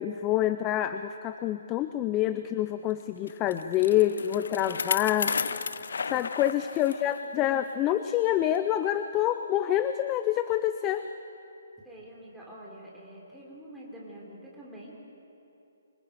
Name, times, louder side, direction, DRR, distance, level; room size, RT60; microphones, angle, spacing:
voice 1, 0.0-5.3 6.1-11.0, left 12 dB, 15° left, 10 dB, 0.4 m, -27 dB
Bicycle, 3.3-7.2 7.6-7.7 8.5-8.6, left 5 dB, 75° left, 0.6 m, -33 dB
voice 2, 5.3-5.6 6.8-7.5 11.8-15.0, right 1 dB, 5° right, -5 dB, 3.4 m, -47 dB
26.5 x 25.0 x 5.0 m, 2.8 s
hypercardioid pair, 170°, 0 cm